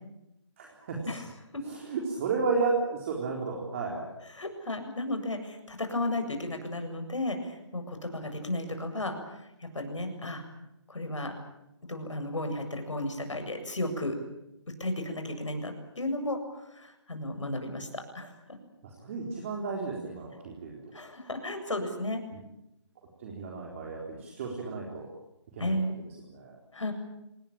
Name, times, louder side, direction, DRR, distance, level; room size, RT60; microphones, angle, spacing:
voice 1, 0.6-1.2 1.6-4.1 18.8-20.8 22.3-22.4 23.2-25.1 25.5-26.6, right 4 dB, 25° right, 0 dB, 4.0 m, -33 dB
voice 2, 4.4-9.1 9.6-10.4 10.9-11.3 11.9-14.2 14.8-18.3 20.9-22.2 25.6-26.0 26.7-26.9, left 1 dB, 85° left, 6 dB, 7.6 m, -34 dB
27.0 x 20.0 x 8.9 m, 0.88 s
figure-of-eight pair, 165°, 15 cm